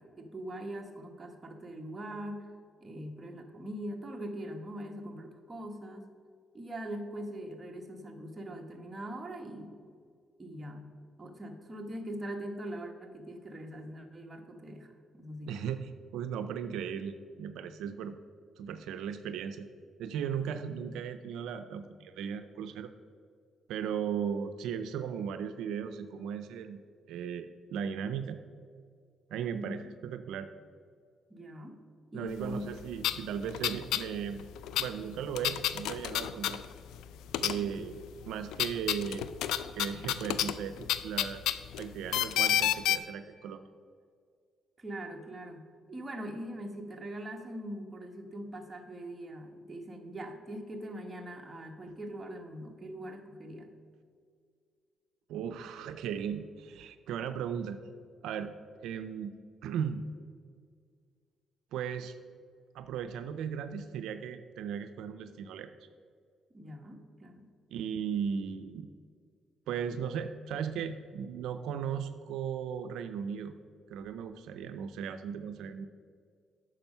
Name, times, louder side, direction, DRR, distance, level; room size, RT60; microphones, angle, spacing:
voice 1, 0.0-2.5 2.8-6.1 6.5-9.8 10.4-10.9 11.2-15.5 29.5-29.9 31.3-31.8 32.1-32.7 37.6-37.8 44.8-53.7 66.5-67.4, right 1 dB, 25° right, 3 dB, 1.3 m, -42 dB
voice 2, 15.5-18.2 18.6-19.7 20.0-22.9 23.7-26.8 27.1-28.4 29.3-30.5 32.1-34.4 34.8-36.6 37.4-38.0 38.3-39.3 39.8-41.4 41.8-43.7 55.3-57.8 58.2-58.5 58.8-59.3 59.6-60.0 61.7-62.1 62.7-65.7 67.7-68.9 69.7-73.5 73.9-75.9, right 7 dB, 85° right, 9 dB, 0.4 m, -36 dB
sound 1, 32.6-32.7 33.0-34.1 34.3-37.0 37.3-37.9 38.2-43.0, left 11 dB, 90° left, 0.4 m, -30 dB
9.0 x 6.1 x 5.4 m, 2.1 s
cardioid pair, 90°, 0 cm